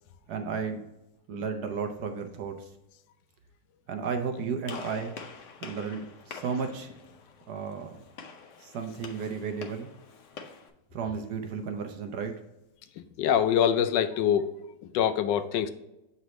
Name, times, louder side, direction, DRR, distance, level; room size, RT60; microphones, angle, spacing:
voice 1, 0.3-0.8 1.3-2.7 3.9-5.2 5.6-6.9 7.5-8.0 8.6-9.9 10.9-12.3, right 6 dB, 65° right, 4 dB, 1.1 m, -33 dB
Gunshot gunfire, 4.7-10.7, left 5 dB, 60° left, 0.8 m, -45 dB
voice 2, 13.0-15.7, left 9 dB, 75° left, 11 dB, 1.2 m, -25 dB
7.7 x 4.0 x 3.1 m, 0.90 s
omnidirectional pair, 2.0 m